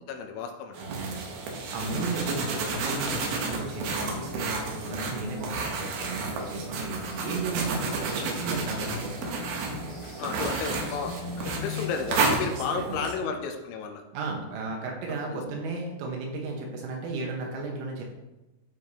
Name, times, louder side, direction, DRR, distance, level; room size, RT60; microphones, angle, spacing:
voice 1, 0.1-1.2 10.2-11.2 11.5-14.0 15.1-15.4, left 6 dB, 80° left, 4 dB, 3.1 m, -33 dB
sound 1, 0.7-13.2, right 4 dB, 75° right, 2.4 m, -32 dB
voice 2, 0.8-9.1 12.4-13.1 14.1-18.0, right 3 dB, 90° right, 0 dB, 4.0 m, -34 dB
sound 2, 1.5-11.9, left 5 dB, 65° left, 4.2 m, -42 dB
12.0 x 4.9 x 2.9 m, 1.0 s
omnidirectional pair, 5.6 m